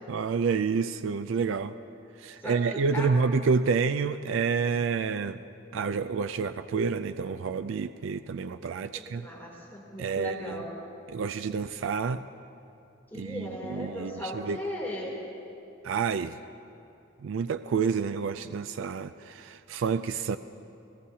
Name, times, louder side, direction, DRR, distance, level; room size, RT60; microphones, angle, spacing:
voice 1, 0.0-1.7 2.2-5.4 5.7-9.3 10.0-10.6 11.1-12.3 13.1-14.6 15.8-16.4 17.2-20.4, right 5 dB, 70° right, 11 dB, 0.4 m, -29 dB
voice 2, 2.4-3.1 8.9-10.7 13.1-15.2, left 1 dB, 10° left, -5 dB, 3.0 m, -37 dB
29.5 x 17.5 x 2.8 m, 2.7 s
head